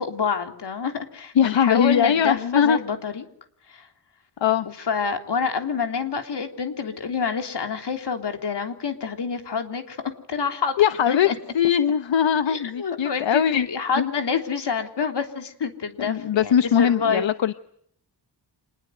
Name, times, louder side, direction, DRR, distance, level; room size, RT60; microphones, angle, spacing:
voice 1, 0.0-3.2 3.7-3.9 4.6-10.0 10.3-10.7 11.1-11.3 12.5-17.3, left 6 dB, 65° left, 5 dB, 3.4 m, -27 dB
voice 2, 1.4-2.8 4.4-4.7 10.8-11.3 11.5-13.7 14.0-14.1 16.0-17.5, left 8 dB, 85° left, 10 dB, 1.1 m, -20 dB
26.5 x 21.0 x 7.9 m, 0.68 s
wide cardioid pair, 155°, 44 cm